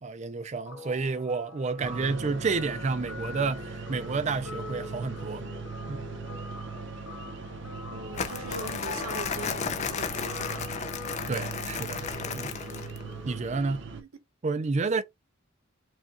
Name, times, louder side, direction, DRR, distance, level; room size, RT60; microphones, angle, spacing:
voice 1, 0.0-5.4 5.9-6.0 11.3-12.1 12.3-12.5 13.3-13.9 14.4-15.0, right 4 dB, 35° right, 0.4 m, -30 dB
Guitar, 0.7-13.4, left 3 dB, 80° left, 1.3 m, -44 dB
sound 1, 1.8-14.0, right 4 dB, 55° right, 0.8 m, -40 dB
voice 2, 7.9-10.6 13.8-14.1, right 3 dB, 90° right, 0.9 m, -42 dB
Crumpling crinkling, 8.1-13.0, left 6 dB, 35° left, 0.4 m, -34 dB
4.8 x 2.3 x 2.9 m
head